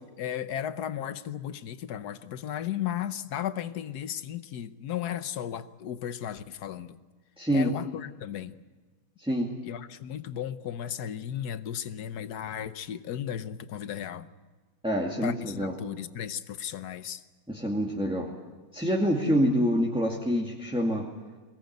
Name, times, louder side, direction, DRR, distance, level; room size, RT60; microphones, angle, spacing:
voice 1, 0.2-7.0 7.5-8.6 9.6-14.3 15.2-17.2, left 10 dB, 70° left, 1.4 m, -35 dB
voice 2, 7.4-7.7 9.2-9.5 14.8-15.7 17.5-18.3 18.7-21.1, equal, 5° right, 2.2 m, -26 dB
22.5 x 18.5 x 9.5 m
omnidirectional pair, 1.8 m